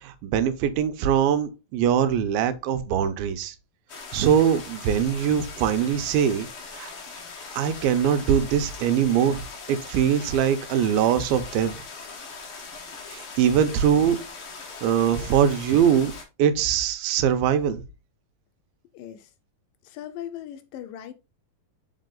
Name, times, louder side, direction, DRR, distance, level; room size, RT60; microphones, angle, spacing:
voice 1, 0.0-3.6 4.1-6.5 6.7-6.9 7.6-11.8 13.1-14.2 14.8-16.1 16.4-17.8, right 8 dB, 85° right, 2.6 m, -22 dB
sound 1, 3.9-16.2, left 4 dB, 50° left, 1.9 m, -40 dB
voice 2, 18.9-19.3 19.8-21.1, left 11 dB, 75° left, 2.2 m, -38 dB
6.4 x 4.9 x 3.8 m
omnidirectional pair, 4.2 m